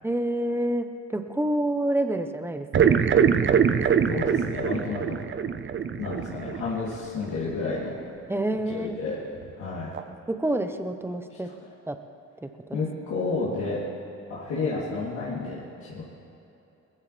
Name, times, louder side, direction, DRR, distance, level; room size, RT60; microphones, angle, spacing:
voice 1, 0.0-3.0 8.3-9.0 10.3-11.5 11.9-12.0 12.4-12.5, right 1 dB, 10° right, 7 dB, 0.9 m, -28 dB
sound 1, 2.7-7.0 7.3-7.4 9.4-9.5 9.9-10.0, right 7 dB, 40° right, 0.7 m, -23 dB
voice 2, 4.1-5.1 6.0-7.9 8.7-9.2 9.5-9.9 12.7-13.8 14.3-16.0, left 3 dB, 75° left, -8 dB, 3.2 m, -31 dB
20.0 x 15.0 x 3.4 m, 2.9 s
cardioid pair, 90°, 30 cm